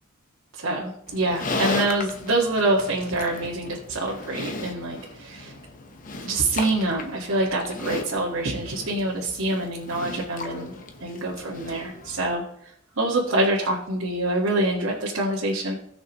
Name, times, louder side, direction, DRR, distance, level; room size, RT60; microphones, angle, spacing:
voice 1, 0.5-5.5 6.2-10.7 11.0-12.4 13.0-15.7, right 2 dB, 75° right, -4 dB, 1.7 m, -26 dB
Livestock farm animals working animals, 1.1-12.3, left 3 dB, 40° left, 1.0 m, -35 dB
18.0 x 6.3 x 3.0 m, 0.71 s
head